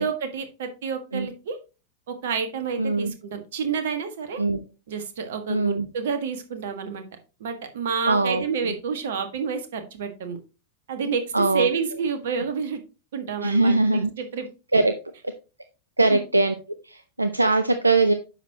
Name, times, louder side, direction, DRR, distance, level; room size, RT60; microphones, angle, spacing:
voice 1, 0.0-1.6 2.1-4.4 4.9-7.0 7.4-10.4 10.9-11.2 11.5-12.8 13.1-14.5 16.0-16.2, right 6 dB, 60° right, 8 dB, 1.5 m, -29 dB
voice 2, 2.8-3.1 4.4-4.6 5.5-5.9 8.1-8.7 11.3-11.7 13.4-14.1 14.7-14.9 16.0-16.5 16.8-18.1, right 2 dB, 85° right, 9 dB, 0.6 m, -21 dB
9.8 x 6.4 x 2.9 m, 0.31 s
figure-of-eight pair, 90°, 0 cm